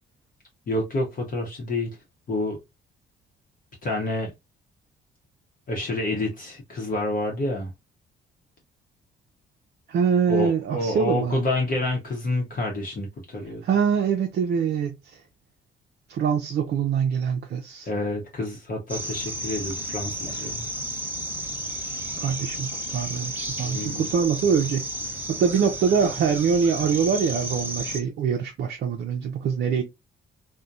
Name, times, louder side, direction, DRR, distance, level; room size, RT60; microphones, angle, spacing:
voice 1, 0.7-2.0 2.3-2.6 3.8-4.3 5.7-7.7 10.3-13.6 17.8-20.7 23.6-24.1, left 2 dB, 45° left, 0.8 m, -28 dB
voice 2, 9.9-11.4 13.6-15.2 16.1-17.9 22.2-24.9 25.4-29.8, right 6 dB, 55° right, 0.4 m, -24 dB
sound 1, 18.9-28.0, right 1 dB, 10° right, 0.7 m, -32 dB
2.7 x 2.1 x 2.3 m
cardioid pair, 90°, 20 cm